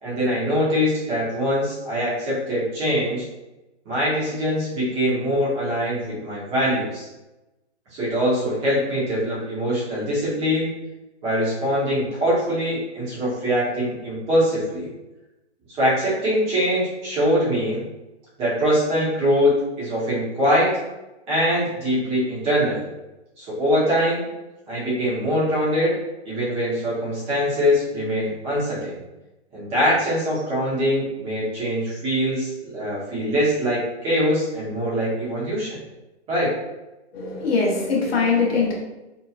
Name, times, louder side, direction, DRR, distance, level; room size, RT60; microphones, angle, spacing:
voice 1, 0.0-3.2 3.9-7.1 7.9-10.7 11.2-14.9 15.8-17.8 18.4-20.7 21.3-22.8 23.4-24.3 24.7-25.9 26.2-29.0 29.5-35.8 36.3-36.5, equal, 15° right, -9 dB, 0.9 m, -23 dB
voice 2, 37.1-38.7, left 4 dB, 60° left, -2 dB, 0.9 m, -21 dB
2.9 x 2.3 x 2.4 m, 1.0 s
hypercardioid pair, 145°, 35 cm